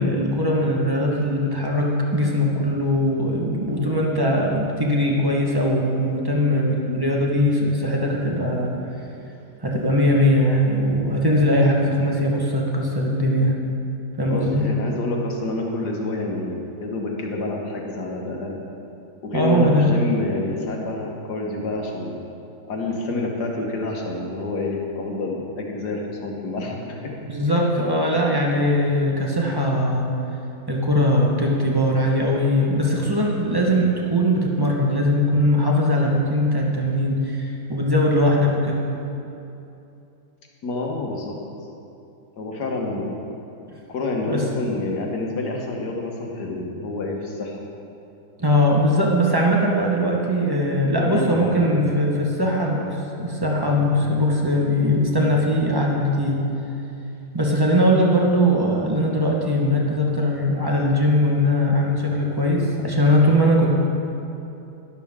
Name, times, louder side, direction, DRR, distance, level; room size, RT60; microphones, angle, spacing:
voice 1, 0.0-8.7 9.6-13.6 14.2-14.8 19.3-19.9 27.2-30.1 30.7-38.8 44.3-44.5 48.4-56.4 57.3-63.7, equal, 15° right, -2 dB, 0.8 m, -20 dB
voice 2, 14.3-18.6 19.2-22.2 22.7-27.1 40.6-41.4 42.4-43.2 43.9-47.6 51.0-51.9, left 2 dB, 55° left, 0 dB, 1.7 m, -28 dB
12.0 x 11.5 x 3.6 m, 2.8 s
omnidirectional pair, 2.2 m